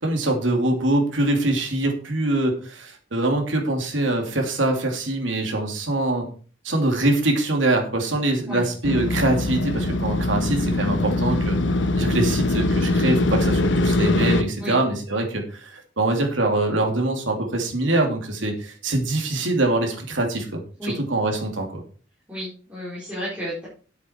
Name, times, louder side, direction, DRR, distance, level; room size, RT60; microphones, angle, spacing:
voice 1, 0.0-6.3 6.6-11.6 12.0-21.8, right 2 dB, 80° right, 2 dB, 2.9 m, -23 dB
Motorcycle, 8.8-14.4, left 2 dB, 65° left, 1.1 m, -22 dB
voice 2, 20.8-21.1 22.3-23.7, equal, 10° right, -11 dB, 4.6 m, -32 dB
10.5 x 8.1 x 4.6 m, 0.40 s
head